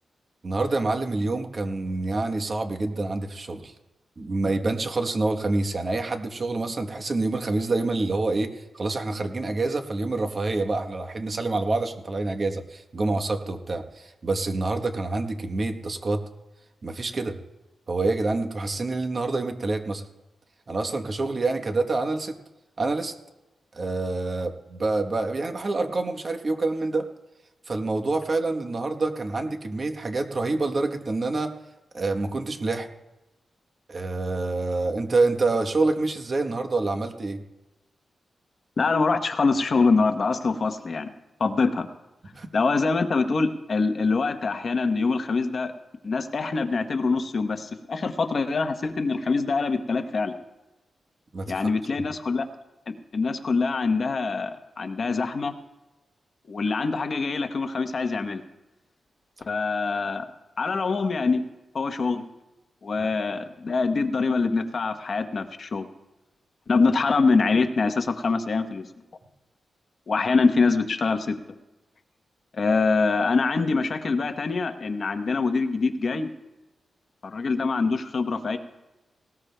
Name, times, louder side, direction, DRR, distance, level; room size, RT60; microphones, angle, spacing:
voice 1, 0.4-3.7 4.2-16.2 16.8-17.4 17.9-20.0 20.7-22.3 22.8-23.1 23.7-27.1 27.7-31.5 31.9-32.9 33.9-37.4 42.3-42.5 51.3-51.7, right 3 dB, 35° right, 6 dB, 1.0 m, -27 dB
voice 2, 38.8-41.1 41.4-41.9 42.5-45.7 46.0-50.4 51.5-52.4 52.9-55.5 56.5-58.4 59.5-60.3 60.6-61.4 61.7-62.3 62.8-65.9 66.7-68.9 70.1-71.4 72.5-76.3 77.2-78.6, left 4 dB, 45° left, 8 dB, 0.9 m, -24 dB
19.0 x 18.5 x 2.2 m, 1.0 s
wide cardioid pair, 155°, 0 cm